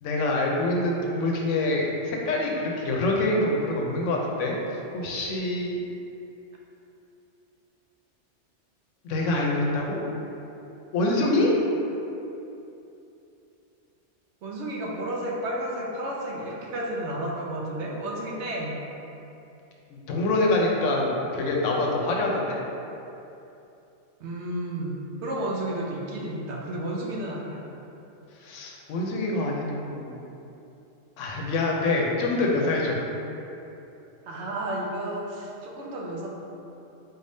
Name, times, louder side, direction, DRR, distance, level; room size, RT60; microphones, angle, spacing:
voice 1, 0.0-4.6 4.9-5.8 9.0-10.0 10.9-11.6 19.9-22.6 28.4-30.1 31.2-33.0, left 2 dB, 85° left, -1 dB, 1.0 m, -25 dB
voice 2, 14.4-18.8 24.2-27.7 34.3-36.3, right 1 dB, 70° right, -2 dB, 0.9 m, -32 dB
4.1 x 2.6 x 3.4 m, 2.8 s
omnidirectional pair, 1.3 m